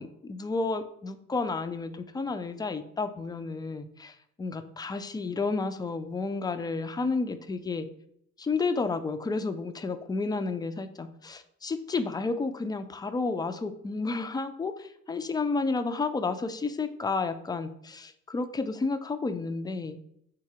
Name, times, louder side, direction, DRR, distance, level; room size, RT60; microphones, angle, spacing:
voice 1, 0.0-7.9 8.4-20.0, left 3 dB, 10° left, 10 dB, 0.3 m, -31 dB
3.9 x 2.8 x 4.6 m, 0.74 s
figure-of-eight pair, 40°, 41 cm